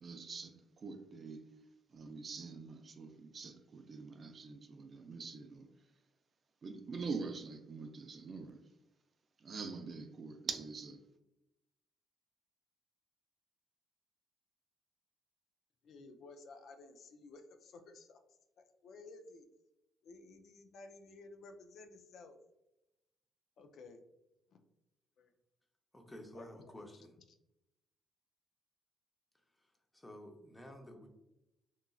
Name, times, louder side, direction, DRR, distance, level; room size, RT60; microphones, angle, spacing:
voice 1, 0.0-1.4 1.9-5.7 6.6-8.6 9.4-11.0, right 4 dB, 45° right, 0.3 m, -44 dB
voice 2, 15.8-18.2 18.6-19.5 20.0-22.4 23.6-24.0 24.5-24.6 25.2-25.3 26.3-26.8 27.3-27.4, left 3 dB, 70° left, 0.3 m, -55 dB
voice 3, 25.9-27.1 29.6-31.1, left 1 dB, 10° left, 0.6 m, -52 dB
2.9 x 2.4 x 2.3 m
cardioid pair, 90°, 0 cm